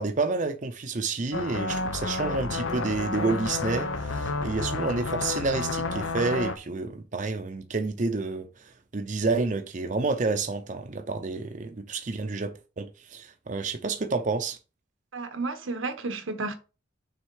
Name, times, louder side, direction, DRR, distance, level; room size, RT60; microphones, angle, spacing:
voice 1, 0.0-14.6, right 3 dB, 40° right, 0.6 m, -29 dB
sound 1, 1.3-6.6, left 3 dB, 85° left, 0.7 m, -30 dB
voice 2, 15.1-16.5, right 3 dB, 90° right, 1.1 m, -32 dB
6.4 x 3.6 x 4.7 m
head